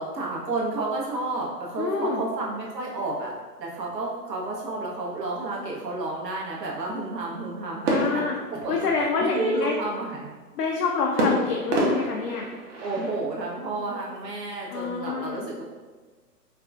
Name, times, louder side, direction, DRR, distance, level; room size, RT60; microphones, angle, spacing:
voice 1, 0.0-3.3 3.6-8.2 8.5-8.8 9.2-10.3 12.8-15.6, right 2 dB, 80° right, -3 dB, 1.1 m, -31 dB
voice 2, 1.8-2.2 7.9-8.4 8.7-9.7 10.6-12.5 14.7-15.4, left 4 dB, 70° left, 0 dB, 0.6 m, -27 dB
sound 1, 7.9-9.4 11.2-13.3, right 1 dB, 45° right, 0.8 m, -28 dB
4.7 x 2.3 x 2.3 m, 1.4 s
hypercardioid pair, 145°, 49 cm